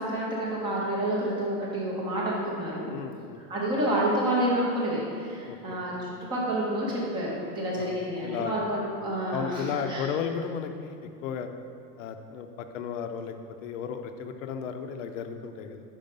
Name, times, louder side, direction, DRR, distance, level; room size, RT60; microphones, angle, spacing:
voice 1, 0.0-2.9 3.5-10.1, right 1 dB, 10° right, -4 dB, 0.4 m, -29 dB
voice 2, 2.9-3.4 5.5-5.8 7.8-8.6 9.3-11.5 12.0-13.3 13.6-15.8, left 7 dB, 55° left, 7 dB, 0.5 m, -34 dB
5.4 x 5.0 x 5.2 m, 2.4 s
supercardioid pair, 165°, 47 cm